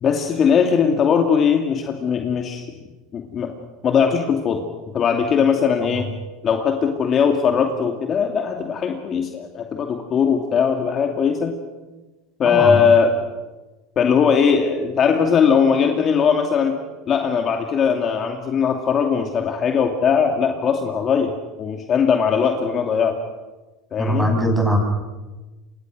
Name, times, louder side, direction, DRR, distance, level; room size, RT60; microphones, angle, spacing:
voice 1, 0.0-2.6 3.1-3.5 3.8-4.6 4.9-6.1 6.4-11.5 12.4-13.1 14.0-16.8 17.1-21.3 21.6-23.2 23.9-24.3, left 6 dB, 35° left, 3 dB, 2.6 m, -19 dB
voice 2, 12.4-12.8 24.0-24.8, equal, 5° right, 3 dB, 6.8 m, -20 dB
28.0 x 24.0 x 6.4 m, 1.2 s
supercardioid pair, 115°, 0 cm